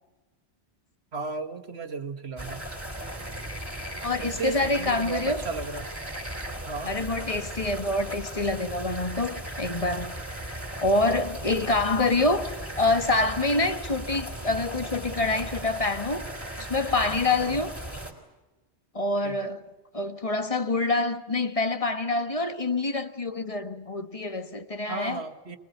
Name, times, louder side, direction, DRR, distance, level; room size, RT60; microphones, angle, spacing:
voice 1, 1.1-2.6 4.2-5.9 6.7-6.9 17.4-17.6 19.2-19.5 24.9-25.6, right 4 dB, 70° right, 1.8 m, -34 dB
sound 1, 2.4-18.1, right 1 dB, 15° right, 4.3 m, -37 dB
voice 2, 4.0-5.4 6.8-10.1 10.8-12.5 12.8-16.3 16.6-17.7 18.9-19.6 19.9-25.2, left 2 dB, 30° left, 1.3 m, -26 dB
24.5 x 21.0 x 8.0 m
omnidirectional pair, 1.1 m